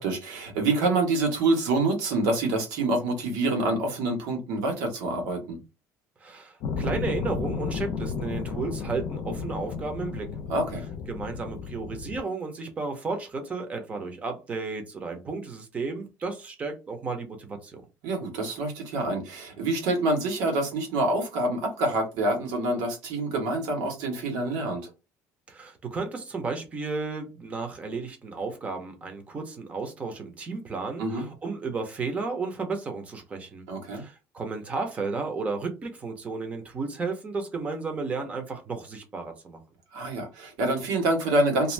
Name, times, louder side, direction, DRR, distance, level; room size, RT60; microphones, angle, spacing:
voice 1, 0.0-5.6 10.5-10.8 18.0-24.9 31.0-31.2 33.7-34.0 39.9-41.7, right 2 dB, 90° right, 1.3 m, -26 dB
voice 2, 6.2-10.3 11.1-17.8 25.5-33.7 33.9-39.6, right 4 dB, 20° right, 0.7 m, -33 dB
sound 1, 6.6-12.2, left 5 dB, 60° left, 0.5 m, -33 dB
2.6 x 2.5 x 3.2 m
cardioid pair, 175°, 7 cm